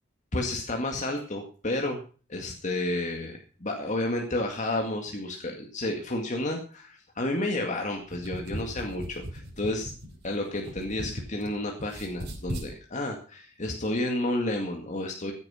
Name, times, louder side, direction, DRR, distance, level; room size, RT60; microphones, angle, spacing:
voice 1, 0.3-2.0 2.3-9.9 10.2-15.3, left 1 dB, 40° left, 2 dB, 2.1 m, -31 dB
sound 1, 8.0-11.5 11.8-12.7, equal, 60° right, 5.7 m, -38 dB
15.0 x 9.6 x 5.7 m, 0.39 s
head